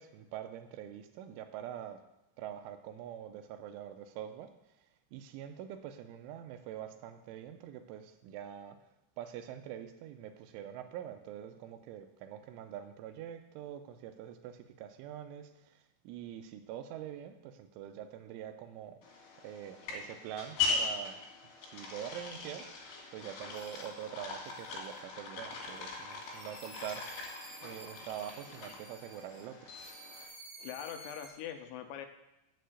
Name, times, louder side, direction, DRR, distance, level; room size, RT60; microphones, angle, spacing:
voice 1, 0.0-2.0 2.4-4.6 5.1-8.8 9.2-19.0 19.4-21.2 21.6-22.7 23.1-27.4 27.6-29.8, right 10 dB, 85° right, 8 dB, 3.1 m, -45 dB
sound 1, 19.0-30.3, left 4 dB, 60° left, 3.6 m, -40 dB
sound 2, 23.5-24.0 24.4-25.0 25.5-29.4 29.7-31.3, right 2 dB, 50° right, 3.3 m, -53 dB
voice 2, 30.6-32.1, left 9 dB, 80° left, 6 dB, 2.8 m, -42 dB
7.4 x 6.6 x 8.0 m, 0.90 s
omnidirectional pair, 5.7 m